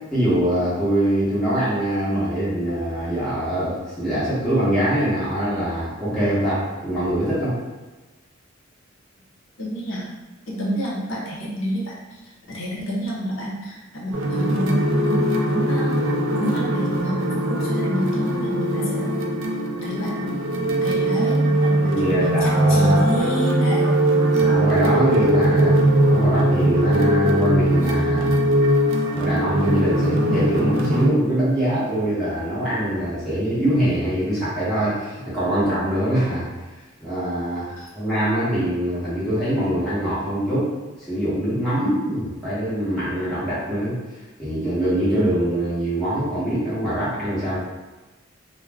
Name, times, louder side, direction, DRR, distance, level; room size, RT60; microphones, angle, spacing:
voice 1, 0.1-7.5 21.8-23.3 24.3-28.4 29.1-36.5 37.0-40.7 41.1-44.0 44.4-47.6, right 1 dB, ahead, -12 dB, 0.9 m, -23 dB
voice 2, 9.6-10.1 10.5-15.9 16.3-19.2 19.8-20.4 20.8-23.9 37.8-37.9, equal, 75° left, -4 dB, 0.7 m, -29 dB
sound 1, 14.1-31.1, right 1 dB, 70° right, 0.4 m, -20 dB
2.3 x 2.0 x 3.3 m, 1.2 s
head